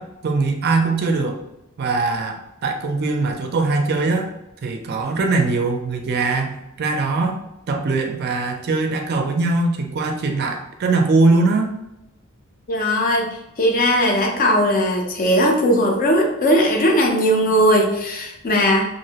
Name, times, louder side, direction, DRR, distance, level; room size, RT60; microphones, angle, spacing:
voice 1, 0.0-1.4 1.8-4.3 4.6-7.4 7.7-11.7, right 3 dB, 50° right, 4 dB, 0.4 m, -21 dB
voice 2, 12.7-13.3 13.6-18.9, equal, 45° left, 1 dB, 0.5 m, -18 dB
2.6 x 2.0 x 2.7 m, 0.88 s
head